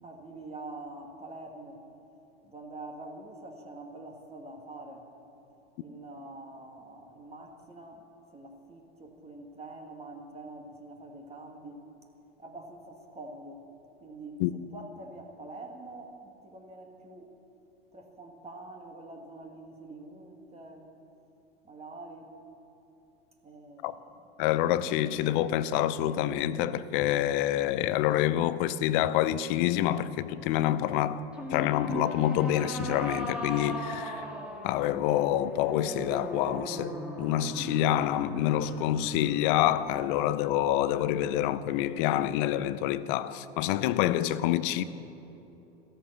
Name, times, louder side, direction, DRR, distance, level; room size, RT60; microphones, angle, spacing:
voice 1, 0.0-1.8 2.4-5.1 5.8-8.0 8.3-11.8 12.4-14.4 14.7-17.3 17.9-20.9 21.6-22.3 23.4-24.0, right 2 dB, 20° right, 1.9 m, -45 dB
voice 2, 24.4-31.2 31.5-34.3 34.6-44.8, left 12 dB, 50° left, 0.7 m, -27 dB
sound 1, 31.3-40.7, equal, 5° right, 2.1 m, -39 dB
14.5 x 13.5 x 6.7 m
hypercardioid pair, 95°, 32 cm